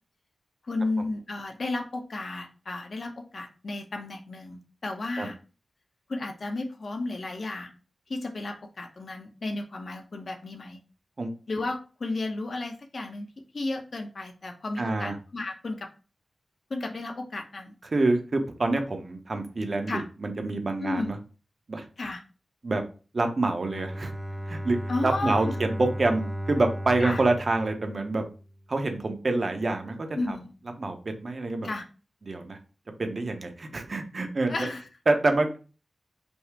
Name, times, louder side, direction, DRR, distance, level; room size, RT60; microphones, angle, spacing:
voice 1, 0.7-5.4 6.1-7.7 8.1-10.8 11.5-13.3 13.5-15.9 16.7-17.7 19.9-20.0 20.8-21.1 22.0-22.2 24.9-25.6 27.0-27.2 30.1-30.5 31.6-31.8 34.5-34.8, left 2 dB, 60° left, 4 dB, 0.9 m, -33 dB
voice 2, 14.8-15.2 17.9-21.2 21.7-21.8 22.6-22.8 23.1-24.1 24.5-26.2 26.5-28.2 28.7-30.4 30.8-31.7 32.2-32.6 33.0-34.7 35.1-35.5, right 2 dB, 55° right, 5 dB, 0.9 m, -27 dB
Bowed string instrument, 23.6-28.6, equal, 15° right, 0.4 m, -35 dB
5.4 x 2.1 x 4.6 m, 0.36 s
cardioid pair, 60°, 0 cm